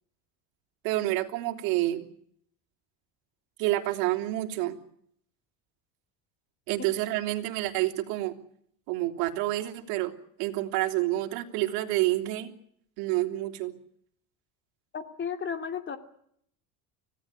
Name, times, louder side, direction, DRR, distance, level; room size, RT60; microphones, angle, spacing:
voice 1, 0.8-2.0 3.6-4.8 6.7-8.3 8.9-10.1 10.4-12.5 13.0-13.7, right 16 dB, 70° right, 4 dB, 3.3 m, -28 dB
voice 2, 14.9-16.0, left 6 dB, 30° left, 6 dB, 2.9 m, -34 dB
25.5 x 17.0 x 9.7 m, 0.70 s
supercardioid pair, 120°, 38 cm